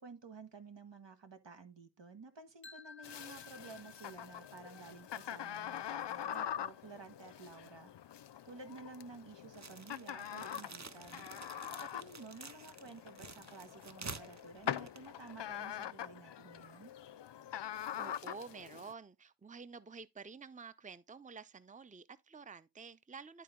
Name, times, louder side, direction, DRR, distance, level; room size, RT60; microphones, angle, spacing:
voice 1, 0.0-7.9 8.4-11.3 11.7-16.9, right 4 dB, 85° right, 1.7 m, -53 dB
Single Chime, 2.6-8.5, left 4 dB, 30° left, 0.6 m, -59 dB
sound 1, 3.0-18.9, left 10 dB, 75° left, 0.5 m, -44 dB
sound 2, 9.5-15.6, right 3 dB, 40° right, 1.1 m, -50 dB
voice 2, 17.5-23.4, right 5 dB, 20° right, 0.6 m, -50 dB
11.5 x 4.3 x 3.8 m
wide cardioid pair, 45°, 42 cm